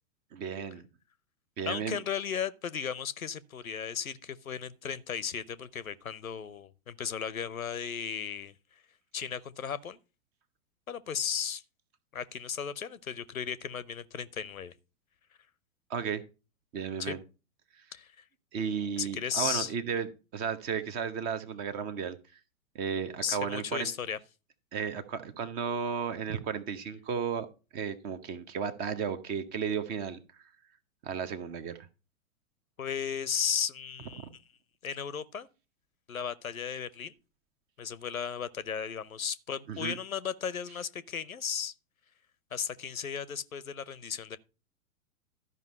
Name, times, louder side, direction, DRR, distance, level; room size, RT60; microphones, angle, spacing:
voice 1, 0.3-0.9 1.6-2.0 15.9-16.2 16.7-17.2 18.5-20.1 20.3-22.2 22.7-23.9 24.7-27.5 27.7-30.2 31.0-31.8 34.2-34.3 39.7-40.0, right 6 dB, 25° right, 0.8 m, -34 dB
voice 2, 1.7-8.5 9.1-10.0 10.9-11.6 12.1-14.7 17.0-17.1 17.9-18.1 19.0-19.7 23.2-24.2 32.8-34.3 34.8-35.5 36.1-37.1 37.8-41.7 42.5-44.4, left 7 dB, 75° left, 0.8 m, -35 dB
12.5 x 5.4 x 5.3 m
figure-of-eight pair, 105°, 42 cm